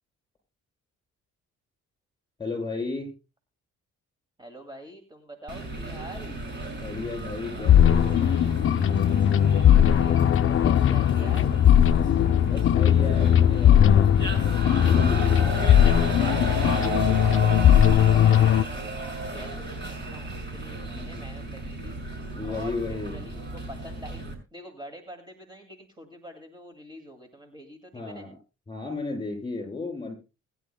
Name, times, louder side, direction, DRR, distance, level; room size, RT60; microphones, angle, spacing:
voice 1, 2.4-3.1 6.8-8.2 12.4-15.5 20.9-21.2 22.3-23.2 27.9-28.4 28.7-30.1, left 3 dB, 15° left, 0 dB, 7.4 m, -34 dB
voice 2, 4.4-6.4 9.5-11.6 17.2-22.0 22.5-28.3, equal, 15° right, 4 dB, 2.3 m, -45 dB
sound 1, 5.5-24.3, right 2 dB, 35° right, 5.9 m, -34 dB
sound 2, 7.6-18.6, left 10 dB, 45° left, 0.5 m, -19 dB
21.5 x 10.5 x 2.2 m, 0.30 s
cardioid pair, 90°, 30 cm